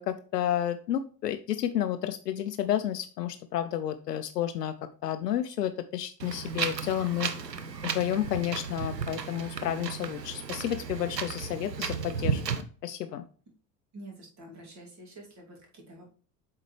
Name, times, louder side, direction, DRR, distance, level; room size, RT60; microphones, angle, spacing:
voice 1, 0.0-7.3 7.8-13.2, left 11 dB, 75° left, 10 dB, 0.6 m, -31 dB
Wind, 6.2-12.6, right 6 dB, 90° right, 0.7 m, -34 dB
voice 2, 13.9-16.1, right 1 dB, 35° right, -1 dB, 2.7 m, -47 dB
7.4 x 4.3 x 3.2 m, 0.40 s
figure-of-eight pair, 75°, 48 cm